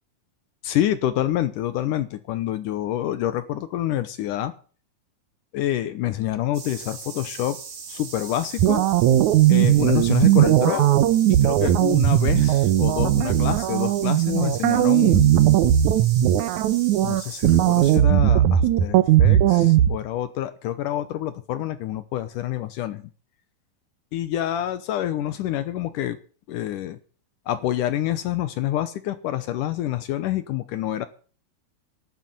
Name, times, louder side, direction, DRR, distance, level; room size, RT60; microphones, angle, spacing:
voice 1, 0.6-4.5 5.5-7.6 7.9-8.9 9.5-10.9 11.3-15.3 17.0-23.1 24.1-26.2 26.5-27.0 27.5-31.1, left 12 dB, 70° left, 13 dB, 2.2 m, -27 dB
sound 1, 6.5-18.0, right 6 dB, 85° right, 4.9 m, -39 dB
sound 2, 8.6-19.9, right 12 dB, 70° right, 2.0 m, -18 dB
12.5 x 9.7 x 9.0 m, 0.40 s
omnidirectional pair, 4.3 m